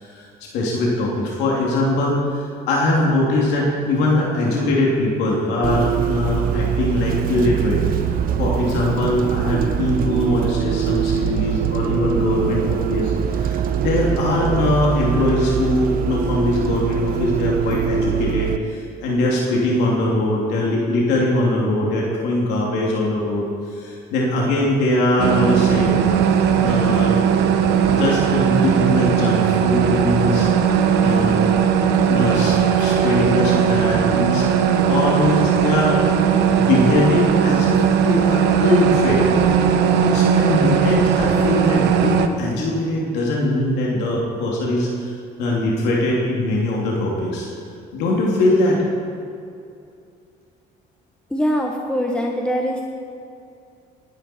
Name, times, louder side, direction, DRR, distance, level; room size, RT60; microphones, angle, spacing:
voice 1, 0.5-23.5 23.8-25.9 26.6-27.1 27.9-30.5 31.0-31.4 32.1-34.4 34.9-36.1 36.6-37.8 38.0-39.3 40.0-45.1 45.4-47.5 47.9-48.8, left 1 dB, 90° left, -3 dB, 2.8 m, -21 dB
Bus, 5.6-18.6, right 8 dB, 55° right, 0.7 m, -23 dB
sound 1, 25.2-42.3, right 8 dB, 85° right, 1.0 m, -18 dB
voice 2, 51.3-52.8, equal, 5° left, 0 dB, 1.3 m, -22 dB
19.5 x 11.0 x 4.4 m, 2.5 s
cardioid pair, 110°, 17 cm